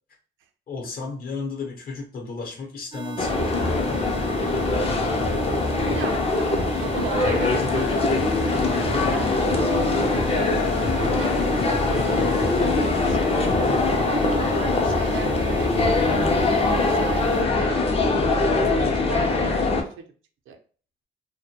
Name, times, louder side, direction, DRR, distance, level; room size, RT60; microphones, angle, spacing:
voice 1, 0.7-3.9, left 4 dB, 50° left, 1 dB, 0.8 m, -34 dB
sound 1, 2.9-17.4, right 8 dB, 25° right, 0.4 m, -36 dB
sound 2, 3.2-19.8, left 3 dB, 30° left, 0.4 m, -22 dB
voice 2, 5.9-10.3 10.8-13.8 14.0-20.0 20.5-20.6, right 7 dB, 80° right, 5 dB, 0.5 m, -37 dB
sound 3, 7.4-12.6, left 2 dB, 75° left, 0.8 m, -37 dB
2.1 x 2.1 x 2.7 m, 0.40 s
cardioid pair, 90°, 20 cm